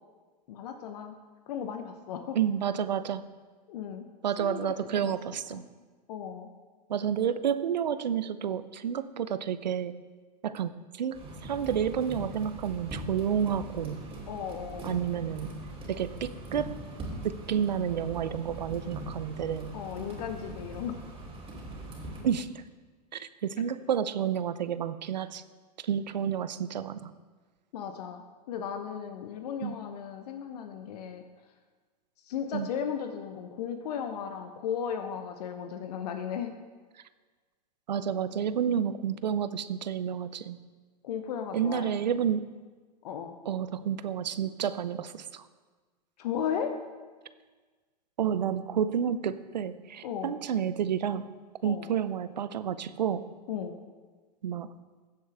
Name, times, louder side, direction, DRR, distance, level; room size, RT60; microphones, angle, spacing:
voice 1, 0.5-1.1 1.5-2.4 3.7-4.0 4.4-5.1 5.5-5.6 6.1-6.5 14.3-15.1 19.7-21.0 27.7-31.2 32.3-36.5 41.0-41.9 43.0-43.4 46.2-46.8 50.0-50.3 51.6-51.9 53.5-53.8, left 8 dB, 70° left, 7 dB, 0.9 m, -35 dB
voice 2, 2.3-3.3 4.2-5.7 6.9-10.0 10.4-10.7 11.0-14.0 14.8-15.5 15.9-16.8 17.2-19.8 22.2-22.6 23.1-25.4 25.8-27.1 29.6-29.8 32.5-32.7 37.9-40.6 41.5-42.5 43.5-45.4 48.2-51.3 51.6-53.3 54.4-54.7, right 8 dB, 90° right, 14 dB, 0.5 m, -30 dB
sound 1, 11.1-22.2, right 1 dB, 25° right, 2.8 m, -41 dB
15.0 x 7.7 x 3.4 m, 1.4 s
hypercardioid pair, 100°, 21 cm